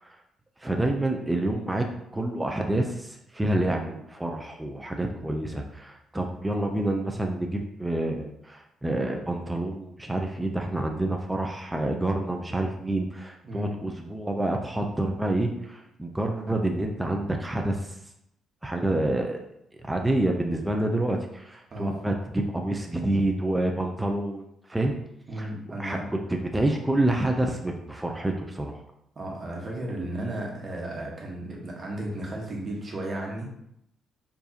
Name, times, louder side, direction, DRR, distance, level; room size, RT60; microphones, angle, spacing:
voice 1, 0.6-1.9 2.1-18.0 18.6-19.4 19.8-25.0 25.4-25.5 25.8-26.0 26.3-28.8, right 1 dB, 10° right, 2 dB, 0.4 m, -28 dB
voice 2, 21.7-22.0 25.3-26.1 29.1-33.6, right 1 dB, 40° right, -1 dB, 1.2 m, -34 dB
4.8 x 2.6 x 2.8 m, 0.78 s
cardioid pair, 90°, 0 cm